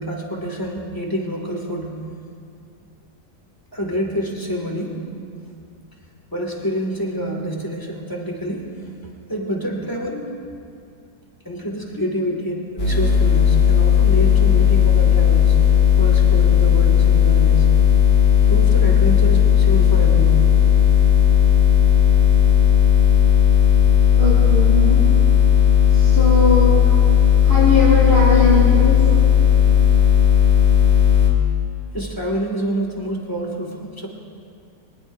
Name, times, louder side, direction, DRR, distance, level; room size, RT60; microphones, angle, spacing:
voice 1, 0.0-2.0 3.7-5.1 6.3-10.3 11.4-15.6 16.0-17.7 18.4-20.5 31.9-34.1, equal, 10° left, -1 dB, 2.2 m, -27 dB
sound 1, 12.8-31.3, left 9 dB, 35° left, 3.6 m, -14 dB
voice 2, 24.2-25.1 25.9-26.9 27.4-29.0, left 2 dB, 45° right, -11 dB, 5.3 m, -20 dB
23.0 x 20.0 x 2.7 m, 2.4 s
omnidirectional pair, 1.9 m